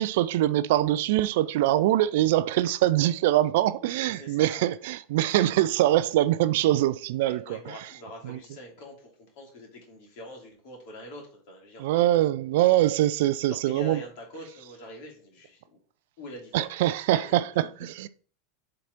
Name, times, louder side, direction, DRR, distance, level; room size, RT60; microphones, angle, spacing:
voice 1, 0.0-7.7 8.2-8.4 11.8-14.0 16.5-18.1, right 14 dB, 55° right, 0.4 m, -23 dB
voice 2, 4.0-4.7 7.2-11.9 13.3-15.8 16.2-17.5, left 1 dB, 50° left, 2.6 m, -44 dB
7.1 x 3.9 x 4.5 m
figure-of-eight pair, 80°, 0 cm